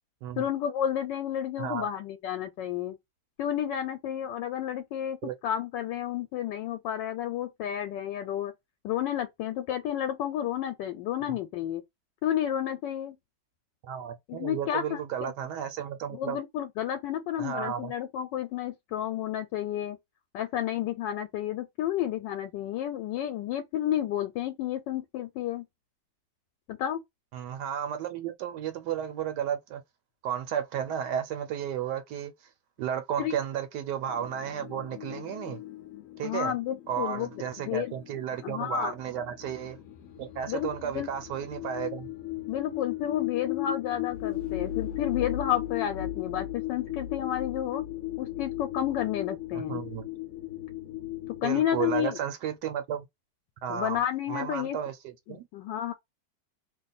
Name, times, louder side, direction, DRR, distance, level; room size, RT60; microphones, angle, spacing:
voice 1, 0.4-3.0 3.4-5.2 5.4-8.5 8.8-11.8 12.2-13.2 14.3-15.3 16.1-20.0 20.3-25.6 26.7-27.0 33.2-33.3 36.2-37.3 37.7-37.9 38.4-38.9 40.5-41.1 42.5-47.8 48.2-49.8 51.4-52.2 53.7-54.8 55.3-55.9, left 11 dB, 90° left, 1.2 m, -31 dB
voice 2, 1.6-1.9 5.2-5.3 11.3-11.4 13.8-16.4 17.4-17.9 27.3-29.8 30.2-32.3 32.8-35.6 36.2-36.5 36.9-39.8 40.2-42.1 49.5-50.1 51.4-53.1 53.6-54.0 54.3-55.5, right 9 dB, 80° right, 1.2 m, -33 dB
sound 1, 34.0-52.0, left 14 dB, 65° left, 0.9 m, -37 dB
2.9 x 2.1 x 4.0 m
omnidirectional pair, 1.9 m